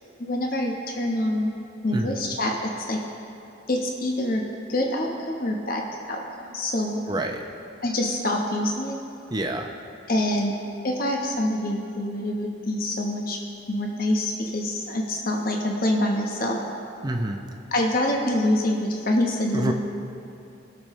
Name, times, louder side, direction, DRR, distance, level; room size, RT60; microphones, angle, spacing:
voice 1, 0.2-1.5 1.8-3.0 3.7-4.4 4.7-5.8 6.1-7.0 7.8-9.0 10.1-10.5 10.8-13.4 13.7-16.6 17.7-19.7, left 1 dB, 45° left, 0 dB, 1.1 m, -25 dB
voice 2, 7.1-7.4 9.3-9.7 17.0-17.4 19.5-19.7, right 1 dB, 20° right, 3 dB, 0.7 m, -27 dB
20.0 x 6.7 x 3.2 m, 2.8 s
head